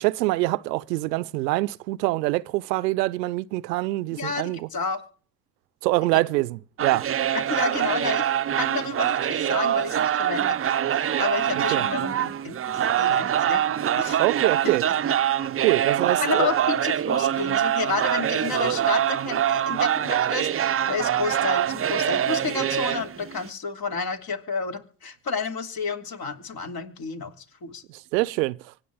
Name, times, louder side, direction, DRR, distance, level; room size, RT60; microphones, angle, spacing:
voice 1, 0.0-4.7 5.8-7.1 11.7-11.8 14.2-14.8 15.6-16.5 27.9-28.7, right 20 dB, 85° right, 0.7 m, -25 dB
voice 2, 4.1-5.0 6.1-6.2 7.3-8.3 8.6-14.2 16.2-27.8, left 4 dB, 45° left, 2.9 m, -31 dB
sound 1, 6.8-23.5, right 10 dB, 30° right, 0.6 m, -24 dB
25.0 x 9.4 x 3.5 m
hypercardioid pair, 70°, 48 cm